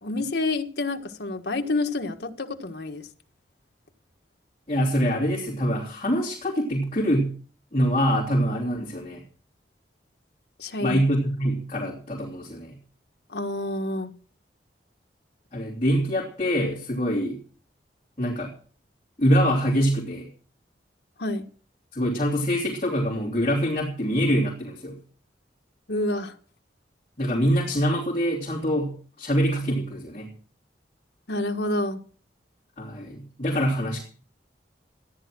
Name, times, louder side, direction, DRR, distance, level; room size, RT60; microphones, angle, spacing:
voice 1, 0.0-3.1 10.6-11.0 13.3-14.1 21.2-21.5 25.9-26.3 31.3-32.0, left 2 dB, 65° left, 1.6 m, -28 dB
voice 2, 4.7-7.3 7.7-9.2 10.8-12.8 15.5-17.4 18.2-18.5 19.2-20.3 21.9-25.0 27.2-30.3 32.8-34.0, equal, 35° left, 3.1 m, -24 dB
14.0 x 10.5 x 6.2 m
head